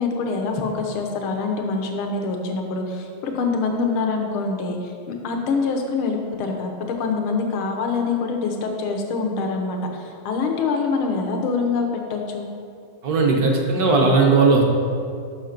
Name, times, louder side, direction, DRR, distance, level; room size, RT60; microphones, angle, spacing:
voice 1, 0.0-4.9 5.2-6.7 7.0-12.4, left 4 dB, 85° left, 3 dB, 1.7 m, -25 dB
voice 2, 13.0-14.6, right 3 dB, 60° right, 1 dB, 1.1 m, -17 dB
6.3 x 5.8 x 5.7 m, 2.3 s
omnidirectional pair, 2.3 m